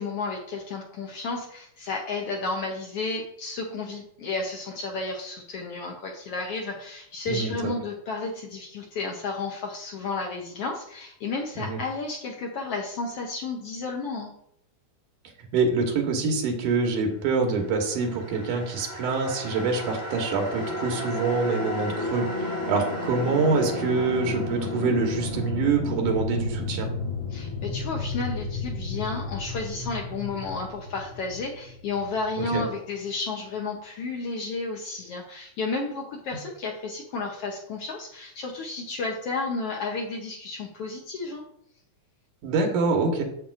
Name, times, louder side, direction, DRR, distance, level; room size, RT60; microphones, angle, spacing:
voice 1, 0.0-14.3 27.3-41.4, left 3 dB, 75° left, 0 dB, 1.3 m, -32 dB
voice 2, 15.5-26.9 32.5-32.6 42.4-43.2, right 4 dB, 85° right, 2 dB, 2.7 m, -25 dB
sound 1, 17.8-33.1, left 2 dB, 25° left, 2.6 m, -33 dB
8.6 x 7.3 x 2.5 m, 0.71 s
omnidirectional pair, 3.6 m